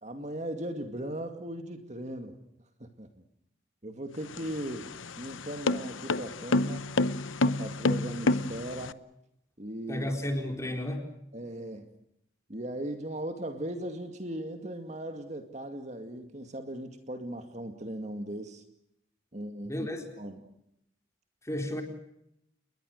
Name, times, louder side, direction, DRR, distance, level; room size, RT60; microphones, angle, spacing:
voice 1, 0.0-2.4 2.8-3.1 3.8-4.9 5.2-6.9 7.4-9.0 9.6-10.1 11.3-11.9 12.5-18.6 19.3-19.9 20.2-20.4, right 1 dB, 35° right, 6 dB, 2.2 m, -38 dB
sound 1, 4.2-8.9, left 2 dB, 80° left, 0.9 m, -29 dB
voice 2, 9.9-11.1 19.7-20.0 21.4-21.8, left 1 dB, 15° left, 3 dB, 4.2 m, -32 dB
29.5 x 21.0 x 6.6 m, 0.77 s
head